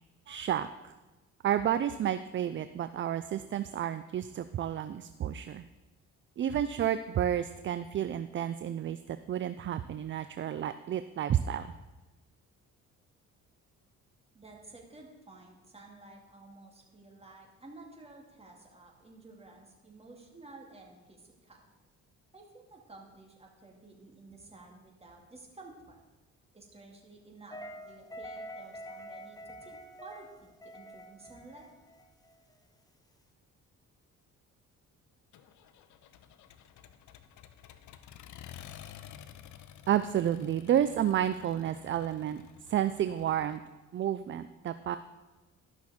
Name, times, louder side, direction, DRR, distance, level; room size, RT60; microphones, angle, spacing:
voice 1, 0.3-0.9 1.4-5.6 6.4-11.7 39.9-42.4 42.7-43.6 43.9-45.0, right 10 dB, 40° right, 12 dB, 0.4 m, -31 dB
voice 2, 14.3-21.7 22.3-26.0 26.5-31.7, right 2 dB, 20° right, 0 dB, 2.2 m, -53 dB
sound 1, 27.5-32.5, equal, 10° left, 0.8 m, -46 dB
Accelerating revving vroom, 35.3-43.6, left 10 dB, 75° left, 0.7 m, -52 dB
12.5 x 6.2 x 4.2 m, 1.1 s
cardioid pair, 90°, 30 cm